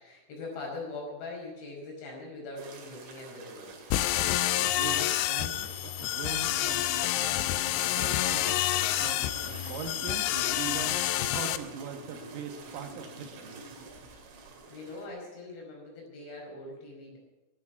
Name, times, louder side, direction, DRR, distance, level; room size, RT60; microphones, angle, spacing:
voice 1, 0.0-3.8 14.7-17.2, left 2 dB, 60° left, -1 dB, 7.3 m, -42 dB
sound 1, 2.6-15.1, right 3 dB, 75° right, 4.8 m, -47 dB
sound 2, 3.9-11.6, left 14 dB, 85° left, 2.4 m, -28 dB
voice 2, 4.5-8.6 9.0-11.0 11.3-13.6, right 6 dB, 90° right, 5 dB, 4.2 m, -41 dB
13.5 x 10.0 x 8.3 m, 1.0 s
omnidirectional pair, 5.7 m